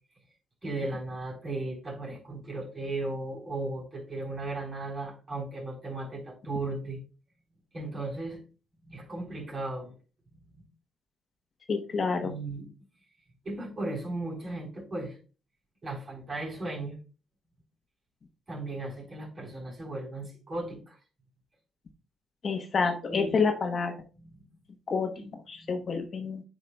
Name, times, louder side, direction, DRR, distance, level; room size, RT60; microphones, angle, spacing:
voice 1, 0.6-7.0 7.7-8.4 8.8-9.9 10.3-10.6 12.2-12.7 13.4-15.2 15.8-17.0 18.5-21.0 22.8-23.5 24.2-24.5 25.1-25.3 25.6-25.8, right 2 dB, 35° right, -2 dB, 3.9 m, -36 dB
voice 2, 11.7-12.3 22.4-23.9 24.9-26.4, left 5 dB, 45° left, 5 dB, 1.0 m, -28 dB
9.0 x 5.1 x 2.3 m, 0.34 s
cardioid pair, 90°, 0 cm